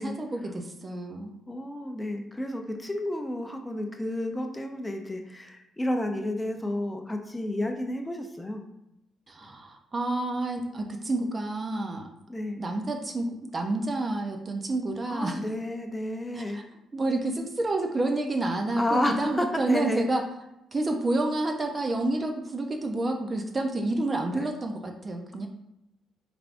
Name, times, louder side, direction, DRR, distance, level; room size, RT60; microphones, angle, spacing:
voice 1, 0.0-1.3 9.3-12.1 12.6-15.4 16.3-16.6 16.9-20.2 20.7-25.5, right 2 dB, 30° right, 4 dB, 0.6 m, -29 dB
voice 2, 1.5-8.7 12.3-12.6 15.1-16.6 18.8-20.1 24.2-24.5, left 1 dB, 10° left, 4 dB, 0.5 m, -31 dB
4.8 x 3.4 x 2.5 m, 0.87 s
cardioid pair, 90°, 0 cm